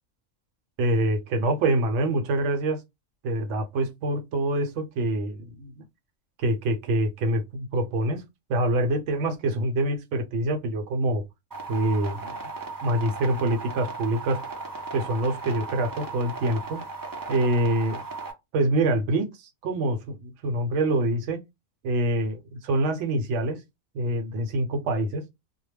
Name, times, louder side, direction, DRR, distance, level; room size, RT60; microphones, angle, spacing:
voice 1, 0.8-2.8 3.2-5.8 6.4-8.2 8.5-11.2 11.7-12.4 12.8-14.4 14.9-16.8 17.3-18.0 18.5-21.4 21.8-23.6 23.9-25.2, right 1 dB, 70° right, 0.9 m, -25 dB
sound 1, 11.5-18.3, right 3 dB, 35° right, 0.3 m, -36 dB
2.2 x 2.0 x 3.2 m
omnidirectional pair, 1.3 m